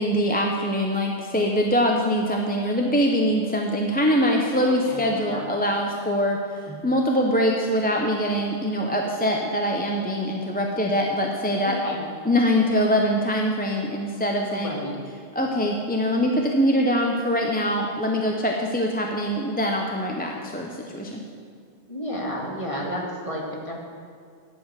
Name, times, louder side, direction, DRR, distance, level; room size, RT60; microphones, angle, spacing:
voice 1, 0.0-11.8 12.2-14.7 15.3-21.2, equal, 10° left, 0 dB, 0.8 m, -23 dB
voice 2, 4.6-5.4 11.6-12.0 14.5-15.0 21.9-23.7, equal, 30° left, -3 dB, 2.2 m, -32 dB
11.0 x 7.0 x 8.3 m, 2.2 s
omnidirectional pair, 1.1 m